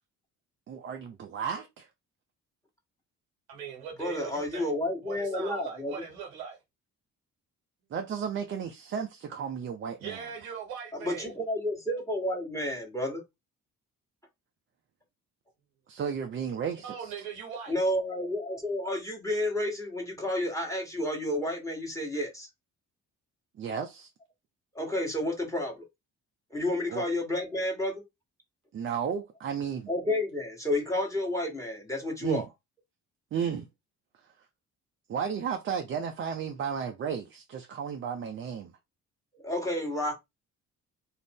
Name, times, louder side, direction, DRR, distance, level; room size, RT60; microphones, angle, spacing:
voice 1, 0.7-1.9 7.9-10.2 15.9-17.1 23.6-24.1 26.9-27.1 28.7-29.9 32.2-32.4 33.3-33.7 35.1-38.7, right 7 dB, 30° right, 0.4 m, -33 dB
voice 2, 3.5-4.7 5.0-6.6 10.0-11.3 16.8-17.7, right 7 dB, 85° right, 0.8 m, -40 dB
voice 3, 4.0-6.0 10.9-13.2 17.7-22.5 24.7-25.8 26.5-28.0 29.9-32.4 39.3-40.1, left 1 dB, 5° left, 1.2 m, -31 dB
2.4 x 2.0 x 3.5 m
hypercardioid pair, 45°, 41 cm